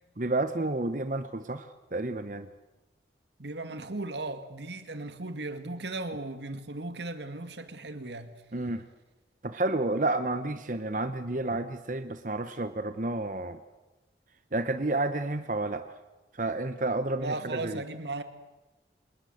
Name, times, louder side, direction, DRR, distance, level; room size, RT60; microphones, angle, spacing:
voice 1, 0.2-2.5 8.5-8.8 9.4-13.6 14.5-16.0 16.3-17.8, right 2 dB, 45° right, 1.0 m, -30 dB
voice 2, 3.4-8.4 17.2-18.2, right 2 dB, 80° right, 2.1 m, -36 dB
26.0 x 20.5 x 8.0 m
head